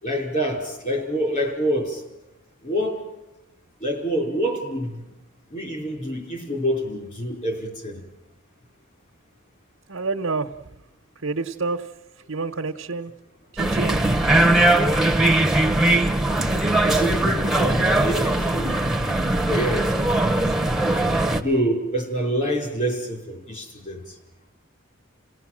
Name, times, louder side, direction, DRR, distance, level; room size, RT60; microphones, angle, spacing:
voice 1, 0.0-2.0 2.6-3.0 3.8-5.1 5.5-8.0 16.9-18.8 19.5-20.1 21.2-24.1, equal, 40° left, 2 dB, 5.0 m, -26 dB
voice 2, 9.9-10.5 11.2-11.9 12.3-13.1 13.5-14.0, right 3 dB, 85° right, 4 dB, 1.1 m, -28 dB
sound 1, 13.6-21.4, right 1 dB, ahead, 1.0 m, -20 dB
28.5 x 17.0 x 7.6 m, 1.0 s
head